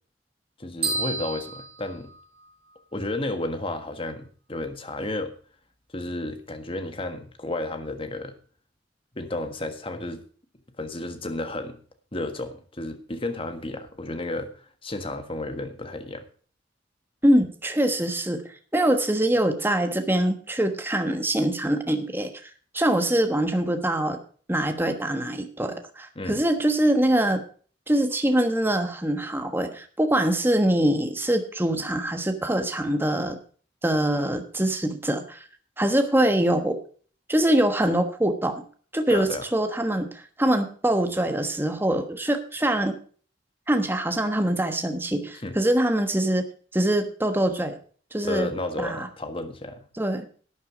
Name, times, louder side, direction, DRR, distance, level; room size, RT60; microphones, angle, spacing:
voice 1, 0.6-2.1 2.9-5.3 5.9-8.3 9.1-10.2 10.8-11.8 12.1-14.5 14.8-16.2 26.1-26.4 39.1-39.4 45.4-45.6 48.2-49.8, left 2 dB, 30° left, 8 dB, 1.5 m, -32 dB
sound 1, 0.8-2.7, right 3 dB, 30° right, 4.3 m, -31 dB
voice 2, 17.2-18.4 18.7-22.3 22.7-24.2 24.5-27.4 27.9-33.4 33.8-35.4 35.8-36.8 37.3-38.6 38.9-40.1 40.4-42.9 43.7-46.5 46.7-47.8 48.1-48.5 48.8-49.1 50.0-50.3, right 1 dB, 10° right, 7 dB, 1.3 m, -23 dB
12.0 x 9.2 x 5.1 m, 0.43 s
head